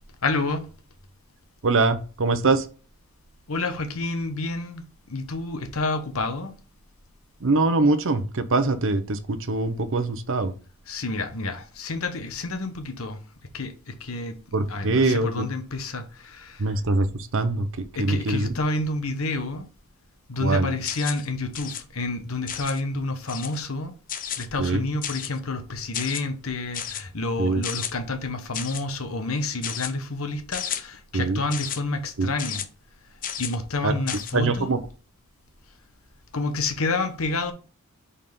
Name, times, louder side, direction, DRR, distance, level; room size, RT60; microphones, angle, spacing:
voice 1, 0.2-0.7 3.5-6.5 10.9-13.2 13.5-14.4 14.7-16.7 17.9-19.7 20.3-23.9 24.4-32.6 33.4-34.8 36.3-37.5, left 3 dB, 80° left, 1.1 m, -29 dB
voice 2, 1.6-2.7 7.4-10.5 14.5-15.5 16.6-17.7 18.0-18.5 20.4-20.7 24.6-24.8 27.4-27.6 31.1-31.4 32.2-32.3 33.8-33.9 34.3-34.8, right 3 dB, 65° right, 0.8 m, -23 dB
sound 1, 20.9-21.3 21.5-21.8 22.5-22.8 23.3-23.6 24.1-24.5 25.0-25.4 25.9-26.2 26.7-27.0 27.6-27.9 28.5-28.8 29.6-29.9 30.5-30.8 31.5-31.8 32.4-32.6 33.2-33.6 34.1-34.3, left 9 dB, 40° left, 0.6 m, -32 dB
5.4 x 4.2 x 5.3 m
head